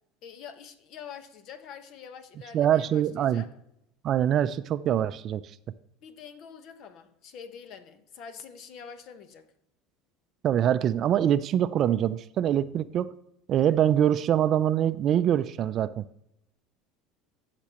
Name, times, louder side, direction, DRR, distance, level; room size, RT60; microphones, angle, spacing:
voice 1, 0.2-3.5 6.0-9.5, left 7 dB, 60° left, 1.2 m, -45 dB
voice 2, 2.5-3.4 4.0-5.4 10.4-13.1 13.5-16.0, right 10 dB, 50° right, 0.4 m, -24 dB
16.0 x 6.0 x 3.0 m
supercardioid pair, 90°, 0 cm